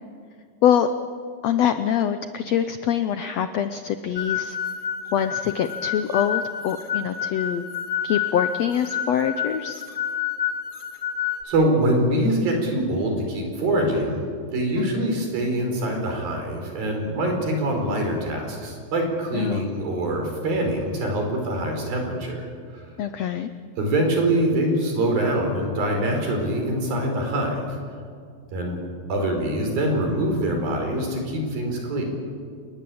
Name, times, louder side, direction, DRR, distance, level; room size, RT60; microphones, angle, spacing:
voice 1, 1.4-4.6 5.1-7.6 8.0-9.8 14.8-15.2 19.3-19.7 23.0-23.5, left 9 dB, 80° left, 9 dB, 1.5 m, -24 dB
sound 1, 4.2-11.4, left 9 dB, 20° left, 1.5 m, -29 dB
voice 2, 11.4-14.2 14.5-22.4 22.7-22.8 23.8-27.8 28.5-28.8 29.1-32.0, right 1 dB, 85° right, 2 dB, 6.7 m, -24 dB
28.0 x 20.0 x 8.7 m, 2.3 s
omnidirectional pair, 4.0 m